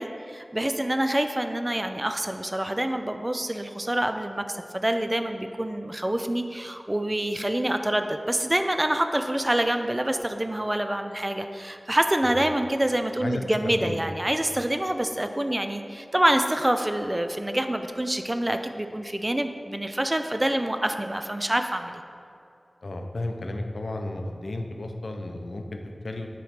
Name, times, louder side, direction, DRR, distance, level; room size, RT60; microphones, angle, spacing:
voice 1, 0.0-22.0, right 1 dB, 25° right, 7 dB, 0.4 m, -26 dB
voice 2, 22.8-26.3, left 2 dB, 80° left, 4 dB, 0.5 m, -33 dB
7.9 x 3.1 x 5.0 m, 2.5 s
wide cardioid pair, 45°, 0 cm